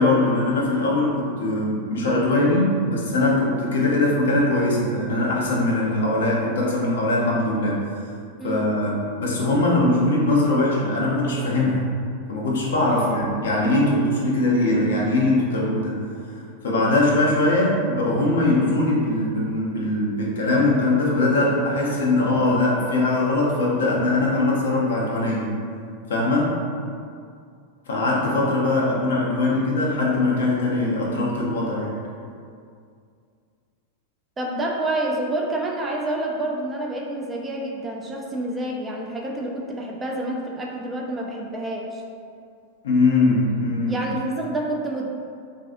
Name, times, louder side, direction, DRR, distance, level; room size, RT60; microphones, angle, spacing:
voice 1, 0.0-7.8 8.4-11.9 12.3-16.1 16.6-25.5 26.1-26.5 27.9-32.0 42.8-44.0, left 2 dB, 60° left, -4 dB, 0.5 m, -21 dB
voice 2, 8.4-8.7 12.9-13.1 34.4-42.0 43.9-45.1, right 1 dB, 15° right, -1 dB, 0.3 m, -28 dB
2.5 x 2.3 x 2.5 m, 2.3 s
figure-of-eight pair, 90°, 0 cm